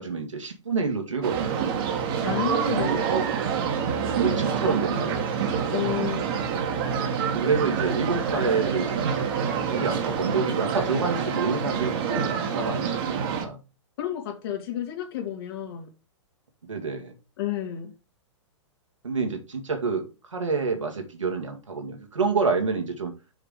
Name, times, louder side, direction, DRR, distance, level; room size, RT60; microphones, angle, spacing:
voice 1, 0.0-1.6 2.9-3.3 4.2-5.2 7.3-13.6 16.7-17.1 19.0-23.1, right 4 dB, 80° right, 2.2 m, -28 dB
sound 1, 1.2-13.4, right 7 dB, 45° right, 1.7 m, -27 dB
voice 2, 2.2-3.1 5.7-6.5 14.0-15.9 17.4-17.9, left 11 dB, 50° left, 2.3 m, -31 dB
6.4 x 5.0 x 4.9 m
figure-of-eight pair, 110°, 16 cm